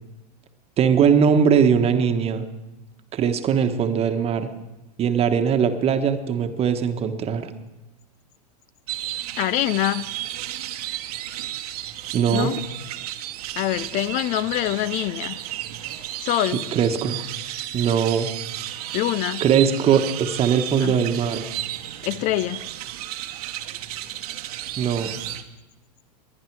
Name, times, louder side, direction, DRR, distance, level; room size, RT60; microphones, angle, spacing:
voice 1, 0.8-2.5 3.1-4.5 5.0-7.5 12.1-12.5 16.7-17.2 17.7-18.3 19.4-21.4 24.8-25.1, right 7 dB, 30° right, 1.2 m, -20 dB
sound 1, 8.9-25.4, right 13 dB, 65° right, 1.2 m, -33 dB
voice 2, 9.4-10.1 12.3-12.6 13.6-15.4 16.2-16.7 18.9-19.4 20.8-21.0 22.0-22.6, left 14 dB, 35° left, 0.4 m, -25 dB
20.5 x 10.5 x 4.7 m
hypercardioid pair, 115°, 21 cm